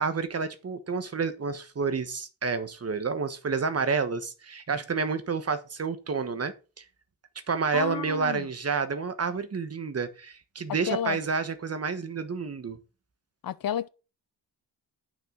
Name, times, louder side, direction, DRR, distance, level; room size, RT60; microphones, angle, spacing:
voice 1, 0.0-6.8 7.5-12.8, right 5 dB, 35° right, 1.2 m, -29 dB
voice 2, 7.7-8.5 10.9-11.2 13.4-13.9, left 10 dB, 55° left, 0.7 m, -31 dB
8.9 x 6.4 x 5.1 m
wide cardioid pair, 150°, 41 cm